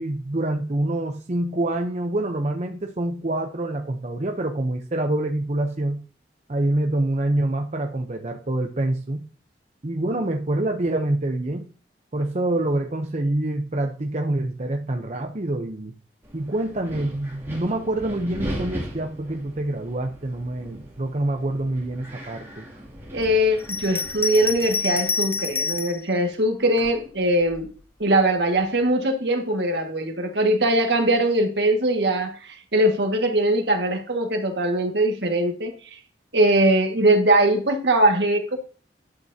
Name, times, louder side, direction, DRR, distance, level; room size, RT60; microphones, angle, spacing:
voice 1, 0.0-6.0 6.5-9.3 9.8-11.7 12.1-15.9 16.3-22.7, right 1 dB, 40° right, 0.8 m, -26 dB
Wind, 16.2-25.8, equal, 15° right, 2.7 m, -39 dB
voice 2, 23.1-27.7 28.0-35.7 36.3-38.6, right 1 dB, 70° right, 1.9 m, -21 dB
Bell, 23.6-26.0 26.8-27.7, left 5 dB, 10° left, 0.3 m, -28 dB
11.5 x 9.0 x 2.8 m
head